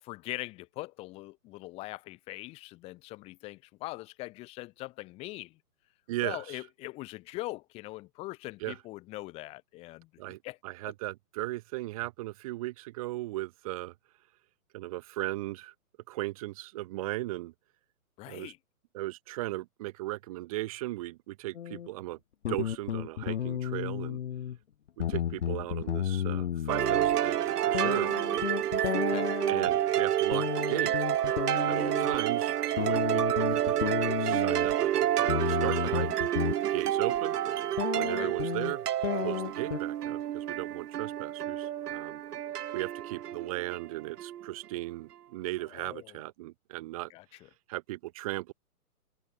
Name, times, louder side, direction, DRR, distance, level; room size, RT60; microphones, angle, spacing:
voice 1, 0.0-5.6 6.2-10.6 18.2-18.6 28.8-29.4 38.2-38.4 45.7-46.2 47.1-47.5, left 20 dB, 15° left, 1.9 m, -42 dB
voice 2, 6.1-6.6 8.6-8.7 10.2-13.9 14.7-15.7 16.1-17.5 18.3-18.5 18.9-22.2 22.5-24.2 25.0-28.2 29.5-31.0 31.6-36.1 36.7-37.4 37.9-42.2 42.7-47.1 47.7-48.5, right 18 dB, 25° right, 2.0 m, -37 dB
sound 1, 21.6-21.9 22.4-24.6 24.9-27.2 27.7-29.7 30.3-32.2 32.8-34.7 35.3-36.6 37.2-37.3 37.8-39.8, left 10 dB, 50° left, 0.8 m, -33 dB
sound 2, 26.7-44.5, right 11 dB, 85° right, 0.7 m, -29 dB
hypercardioid pair, 170°, 45 cm